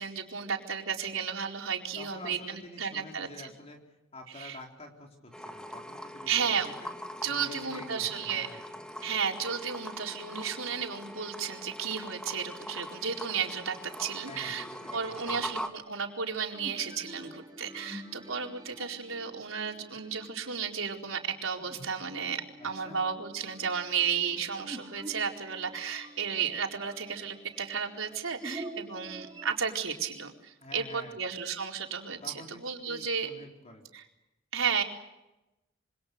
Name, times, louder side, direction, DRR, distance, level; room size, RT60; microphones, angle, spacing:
voice 1, 0.0-3.5 4.3-4.6 6.3-6.7 7.2-8.6 9.0-14.6 14.9-33.3 33.9-34.0 34.5-34.8, right 6 dB, 90° right, 2 dB, 4.3 m, -33 dB
voice 2, 1.9-3.8 4.1-6.9 7.3-8.6 14.3-15.5 22.6-23.0 30.6-31.1 32.2-33.9, left 2 dB, 30° left, 1 dB, 3.9 m, -48 dB
sound 1, 5.3-15.7, equal, 5° left, 2.0 m, -42 dB
sound 2, 14.8-29.6, right 1 dB, 20° right, 4.4 m, -48 dB
27.5 x 25.5 x 6.8 m, 0.97 s
head